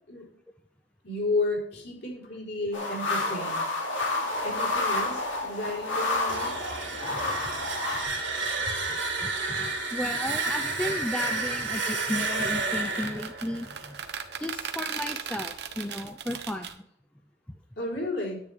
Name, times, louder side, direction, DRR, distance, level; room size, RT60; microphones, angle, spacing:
voice 1, 1.0-3.7 4.4-6.6 8.7-8.8 17.8-18.4, left 2 dB, 60° left, -2 dB, 4.1 m, -32 dB
sound 1, 2.7-8.0, left 2 dB, 85° left, 2.8 m, -29 dB
sound 2, 6.1-14.9, right 3 dB, 85° right, 3.0 m, -31 dB
voice 2, 8.9-14.0 14.4-16.8, left 1 dB, 5° left, 6 dB, 0.4 m, -34 dB
sound 3, 12.7-16.7, right 7 dB, 60° right, 1.0 m, -37 dB
10.0 x 10.0 x 3.5 m, 0.64 s
head